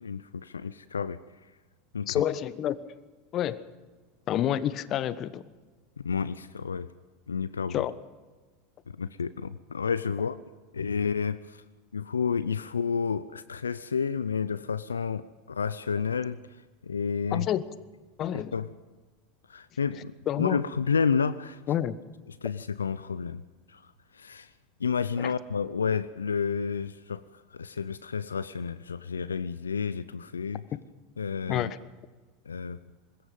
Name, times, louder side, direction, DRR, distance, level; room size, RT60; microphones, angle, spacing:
voice 1, 0.0-1.5 1.9-2.2 6.0-6.9 7.3-7.9 8.9-10.4 10.7-11.6 11.9-16.4 16.8-17.5 18.5-18.7 19.5-21.6 22.4-23.4 23.7-24.5 24.8-30.6 31.2-31.7 32.5-32.8, left 6 dB, 85° left, 16 dB, 0.6 m, -30 dB
voice 2, 2.1-3.0 3.3-3.6 4.3-5.4 7.7-7.9 17.3-17.6 18.2-18.5 20.3-20.6 21.7-22.0 25.2-25.3 30.7-30.8 31.5-31.8, left 11 dB, 40° left, 16 dB, 1.2 m, -28 dB
25.0 x 21.0 x 5.4 m, 1.3 s
hypercardioid pair, 85°, 0 cm